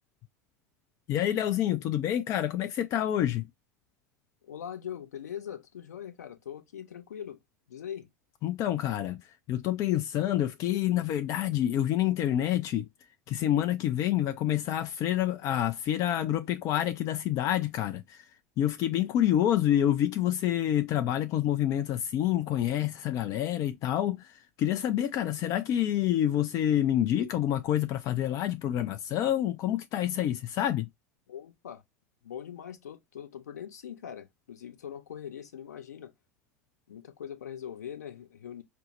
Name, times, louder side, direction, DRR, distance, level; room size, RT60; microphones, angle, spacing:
voice 1, 1.1-3.5 8.4-12.9 13.3-18.3 18.6-30.9, left 11 dB, 35° left, 0.3 m, -28 dB
voice 2, 4.4-7.4 7.7-8.1 31.3-31.8 32.2-36.1 36.9-38.6, left 9 dB, 70° left, 0.8 m, -42 dB
5.0 x 2.0 x 2.9 m
figure-of-eight pair, 80°, 9 cm